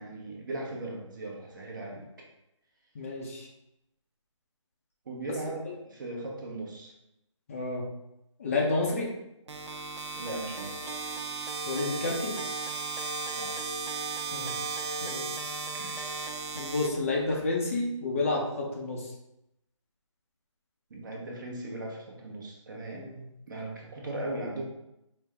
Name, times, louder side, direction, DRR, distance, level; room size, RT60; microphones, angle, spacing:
voice 1, 0.0-2.1 5.0-6.9 10.2-10.9 13.4-13.7 14.4-14.6 15.7-16.2 20.9-23.1 23.5-24.6, right 2 dB, 40° right, -1 dB, 0.9 m, -38 dB
voice 2, 2.9-3.5 5.3-5.4 7.5-7.9 8.4-9.1 11.7-12.4 14.3-15.3 16.5-19.1 22.9-23.2, left 3 dB, 25° left, -2 dB, 0.6 m, -30 dB
sound 1, 9.5-17.5, right 4 dB, 60° right, 0.6 m, -36 dB
5.0 x 2.1 x 3.5 m, 0.86 s
figure-of-eight pair, 160°, 17 cm